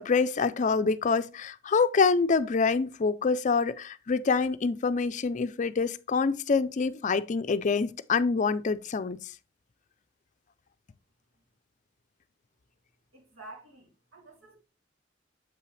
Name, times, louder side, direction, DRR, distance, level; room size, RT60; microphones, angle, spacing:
voice 1, 0.0-9.3, left 4 dB, 40° left, 0.4 m, -26 dB
voice 2, 13.1-14.6, right 2 dB, 85° right, 3.1 m, -49 dB
7.6 x 5.6 x 3.2 m
head